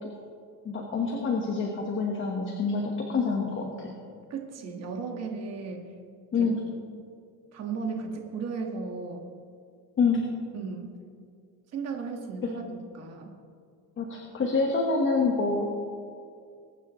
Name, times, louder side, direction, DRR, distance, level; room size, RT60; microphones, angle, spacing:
voice 1, 0.6-2.8 3.1-3.9 6.3-6.6 10.0-10.2 12.4-12.5 14.0-15.7, left 4 dB, 30° left, 0 dB, 1.4 m, -26 dB
voice 2, 4.3-5.9 6.4-6.5 7.5-9.2 10.5-11.0 11.7-13.3, right 4 dB, 40° right, 2 dB, 1.8 m, -35 dB
22.0 x 9.7 x 3.2 m, 2.2 s
cardioid pair, 145°, 40 cm